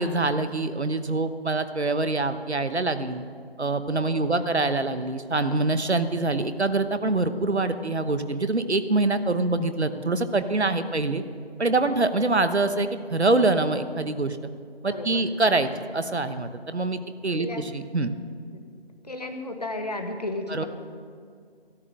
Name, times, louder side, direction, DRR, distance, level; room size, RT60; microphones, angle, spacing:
voice 1, 0.0-3.2 3.6-11.2 11.6-14.4 14.8-17.5 17.7-18.1 20.5-20.6, right 2 dB, 85° right, 10 dB, 1.1 m, -25 dB
voice 2, 4.0-4.5 11.6-12.0 14.8-15.3 17.3-17.7 18.5-18.8 19.0-20.7, left 2 dB, 40° left, 5 dB, 1.3 m, -35 dB
13.5 x 11.0 x 6.4 m, 2.2 s
figure-of-eight pair, 165°, 32 cm